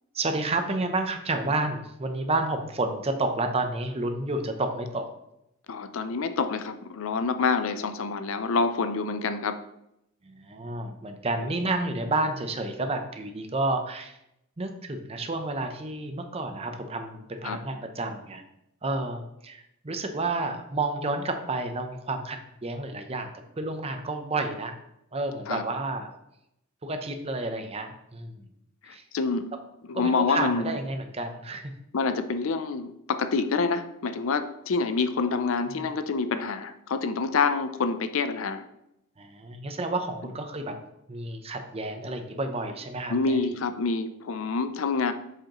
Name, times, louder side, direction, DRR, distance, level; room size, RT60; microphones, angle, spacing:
voice 1, 0.1-5.1 10.2-14.2 14.6-18.4 18.8-23.3 23.6-24.7 25.1-26.1 26.8-28.5 28.9-29.0 29.9-31.6 35.7-35.8 39.2-40.8 41.1-43.4, right 2 dB, 30° right, 6 dB, 0.6 m, -30 dB
voice 2, 5.7-9.6 17.4-17.6 25.5-25.6 28.9-29.5 29.9-30.7 31.9-38.6 43.1-45.1, left 4 dB, 65° left, 10 dB, 0.5 m, -27 dB
7.5 x 4.7 x 3.0 m, 0.82 s
head